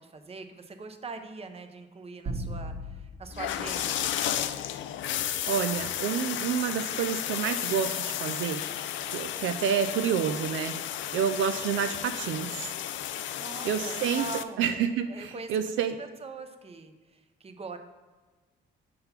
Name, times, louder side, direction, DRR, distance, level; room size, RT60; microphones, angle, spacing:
voice 1, 0.0-4.7 13.4-14.6 15.1-15.7 16.0-17.8, right 4 dB, 30° right, 7 dB, 0.8 m, -42 dB
sound 1, 2.3-4.9, right 1 dB, 50° right, 1.7 m, -39 dB
sound 2, 3.3-14.4, left 11 dB, 75° left, 0.4 m, -33 dB
voice 2, 5.1-8.6 9.1-10.7 11.1-12.7 13.6-14.2 14.6-16.0, right 8 dB, 75° right, 7 dB, 0.5 m, -29 dB
6.6 x 3.8 x 5.8 m, 1.3 s
cardioid pair, 90°, 20 cm